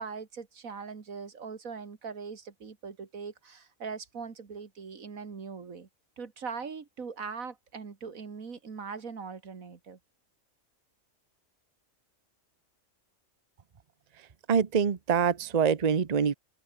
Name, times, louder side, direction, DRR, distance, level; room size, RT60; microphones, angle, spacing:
voice 1, 0.0-5.9 6.2-10.0, right 5 dB, 90° right, 2.4 m, -41 dB
voice 2, 14.5-16.3, right 7 dB, 35° right, 0.9 m, -25 dB
omnidirectional pair, 1.4 m